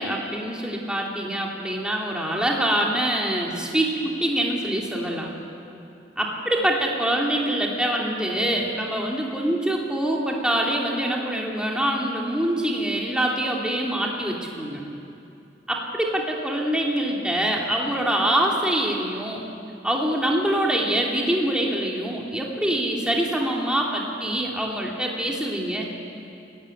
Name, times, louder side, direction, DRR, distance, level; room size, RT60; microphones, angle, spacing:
voice 1, 0.0-3.9 4.2-5.3 6.2-14.8 15.7-19.4 19.8-25.9, right 1 dB, 5° right, -2 dB, 2.9 m, -25 dB
28.5 x 16.0 x 9.8 m, 2.6 s
head